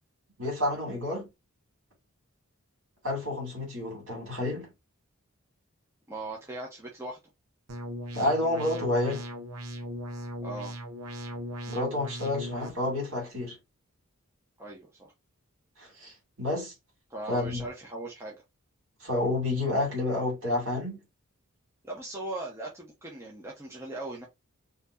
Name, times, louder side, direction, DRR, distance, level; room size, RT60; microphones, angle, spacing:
voice 1, 0.4-1.3 3.0-4.7 8.1-9.2 11.7-13.6 15.8-16.7 17.3-17.6 19.0-21.0, left 2 dB, 60° right, 2.6 m, -29 dB
voice 2, 6.1-7.2 10.4-10.7 14.6-15.1 17.1-18.4 21.8-24.3, right 2 dB, 10° right, 0.8 m, -39 dB
sound 1, 7.7-12.7, equal, 90° right, 0.9 m, -38 dB
4.3 x 2.8 x 2.5 m
head